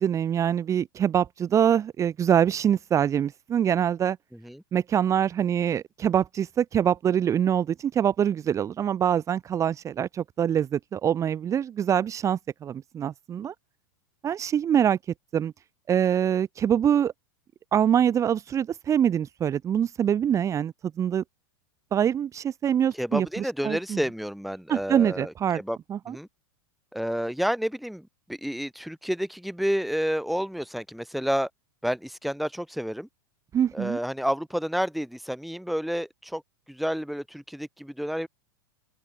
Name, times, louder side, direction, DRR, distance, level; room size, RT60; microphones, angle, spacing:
voice 1, 0.0-4.2 4.7-13.5 14.2-15.0 15.3-15.5 15.9-17.1 17.7-21.2 21.9-24.0 24.7-25.6 25.9-26.1 33.5-34.0, right 9 dB, 25° right, 1.5 m, -24 dB
voice 2, 4.3-4.6 22.9-25.8 26.1-26.3 26.9-31.5 31.8-33.1 33.7-36.4 36.7-38.3, equal, ahead, 3.1 m, -30 dB
hypercardioid pair, 100°, 11 cm